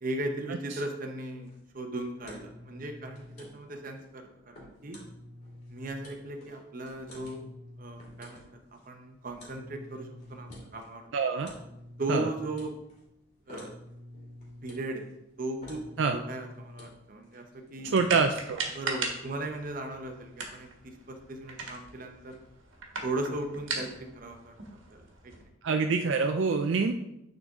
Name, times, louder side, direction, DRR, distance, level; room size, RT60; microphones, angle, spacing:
voice 1, 0.0-5.0 5.7-7.4 7.8-8.5 8.9-11.0 12.0-12.7 13.5-13.8 14.6-15.0 15.4-15.8 16.1-17.9 18.7-22.4 23.0-24.5 24.9-25.1 25.4-25.5, right 2 dB, 45° right, 4 dB, 0.8 m, -37 dB
sound 1, 1.2-18.2, left 1 dB, 40° left, 2.3 m, -49 dB
voice 2, 11.1-11.5 12.1-12.3 16.0-16.2 17.9-18.6 25.6-26.9, right 4 dB, 70° right, 5 dB, 0.4 m, -26 dB
sound 2, 18.0-25.4, right 4 dB, 90° right, 1.3 m, -39 dB
9.3 x 3.9 x 3.6 m, 0.85 s
head